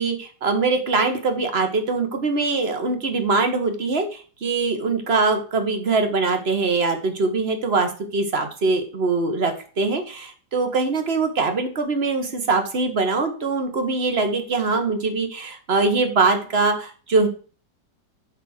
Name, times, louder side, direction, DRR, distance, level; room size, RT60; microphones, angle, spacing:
voice 1, 0.0-17.3, right 3 dB, 40° right, 6 dB, 1.5 m, -22 dB
9.5 x 4.0 x 6.5 m, 0.39 s
omnidirectional pair, 1.9 m